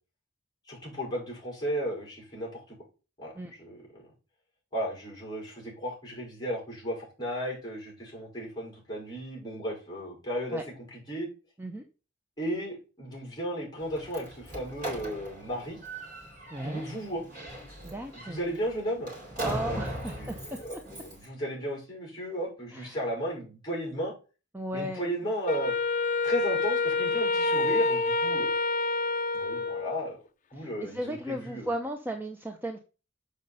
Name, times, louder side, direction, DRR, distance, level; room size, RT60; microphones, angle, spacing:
voice 1, 0.7-2.8 3.2-4.1 4.7-11.3 12.4-15.8 16.6-17.2 18.1-19.1 19.6-19.8 20.1-24.1 24.7-25.8 26.2-28.5 29.3-30.2 30.5-31.7, equal, 20° left, -3 dB, 5.3 m, -34 dB
Slam, 13.8-21.3, right 1 dB, 45° right, 3.8 m, -39 dB
voice 2, 16.5-16.8 17.8-18.4 19.4-20.7 22.7-23.0 24.5-25.0 30.6-32.8, right 1 dB, 10° right, 3 dB, 0.7 m, -35 dB
Wind instrument woodwind instrument, 25.5-30.1, left 3 dB, 40° left, 0.6 m, -27 dB
6.8 x 5.3 x 5.5 m, 0.33 s
head